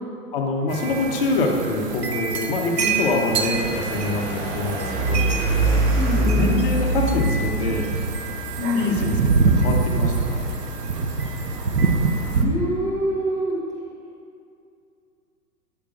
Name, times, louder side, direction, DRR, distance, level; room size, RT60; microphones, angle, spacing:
voice 1, 0.3-5.3 6.1-7.9 8.7-9.2 9.4-10.5, left 2 dB, 35° left, 1 dB, 0.9 m, -25 dB
sound 1, 0.7-12.4, right 4 dB, 85° right, 0.8 m, -25 dB
sound 2, 3.5-9.6, right 2 dB, 40° right, 1.0 m, -24 dB
voice 2, 5.9-6.7 8.6-8.9 12.3-13.6, left 1 dB, 5° right, -6 dB, 0.6 m, -25 dB
8.3 x 7.6 x 2.5 m, 2.5 s
figure-of-eight pair, 115°, 48 cm